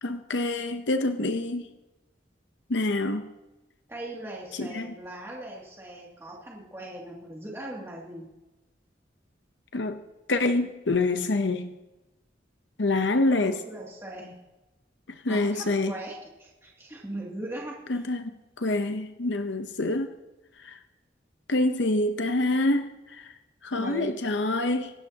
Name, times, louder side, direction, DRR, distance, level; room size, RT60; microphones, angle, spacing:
voice 1, 0.0-1.7 2.7-3.2 4.6-4.9 9.7-10.0 10.3-11.7 12.8-13.6 15.2-15.9 17.9-18.3 18.6-20.1 20.6-20.8 21.5-22.9 23.2-23.3 23.6-24.9, left 2 dB, 85° left, 7 dB, 0.9 m, -26 dB
voice 2, 3.9-8.3 13.2-14.4 15.3-18.0 23.7-24.1, right 1 dB, 15° right, -4 dB, 2.5 m, -40 dB
25.5 x 11.5 x 2.9 m, 1.1 s
head